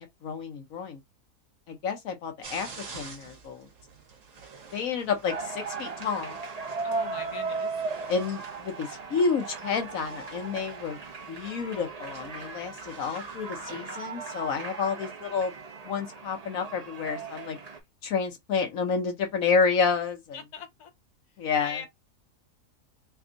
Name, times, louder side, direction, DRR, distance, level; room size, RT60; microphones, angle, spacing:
voice 1, 0.2-1.0 1.7-2.7 2.9-3.7 4.7-6.4 8.1-11.0 11.3-15.5 15.8-17.6 18.0-20.4 21.4-21.8, left 5 dB, 65° left, 1.2 m, -29 dB
sound 1, 2.4-13.7, right 4 dB, 60° right, 1.4 m, -49 dB
sound 2, 5.2-17.8, right 4 dB, 35° right, 0.7 m, -37 dB
voice 2, 6.8-7.8 20.3-20.9 21.6-21.9, left 7 dB, 85° left, 1.4 m, -40 dB
3.4 x 2.3 x 3.8 m
omnidirectional pair, 1.6 m